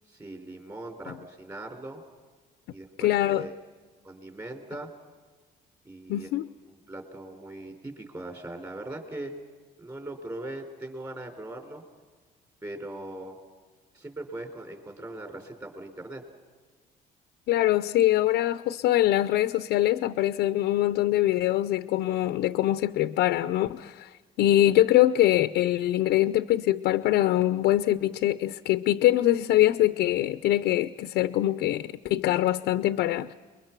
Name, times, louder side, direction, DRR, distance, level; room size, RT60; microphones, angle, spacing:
voice 1, 0.1-2.0 2.7-3.5 4.0-4.9 5.8-6.3 6.7-9.3 9.8-11.8 12.6-13.4 13.9-16.2, right 1 dB, 20° right, 3 dB, 4.2 m, -40 dB
voice 2, 3.0-3.5 6.1-6.5 17.5-24.1 24.4-33.3, left 14 dB, 80° left, 11 dB, 0.7 m, -23 dB
29.5 x 22.5 x 6.0 m, 1.5 s
cardioid pair, 110°, 17 cm